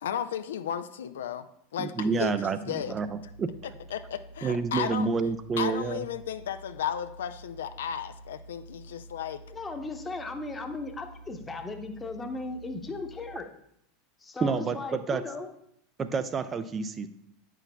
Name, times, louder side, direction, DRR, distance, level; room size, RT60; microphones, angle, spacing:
voice 1, 0.0-1.4 1.7-3.0 3.9-5.1 5.6-9.4, left 9 dB, 75° left, 11 dB, 0.3 m, -34 dB
voice 2, 1.8-3.5 4.4-6.0 14.4-15.2 16.0-17.1, right 5 dB, 30° right, 11 dB, 0.4 m, -29 dB
sound 1, 2.8-13.4, right 1 dB, 85° right, 1.9 m, -49 dB
voice 3, 9.5-13.5 14.2-15.5, left 3 dB, 20° left, 5 dB, 0.9 m, -37 dB
8.7 x 6.1 x 2.3 m, 0.74 s
hypercardioid pair, 85°, 0 cm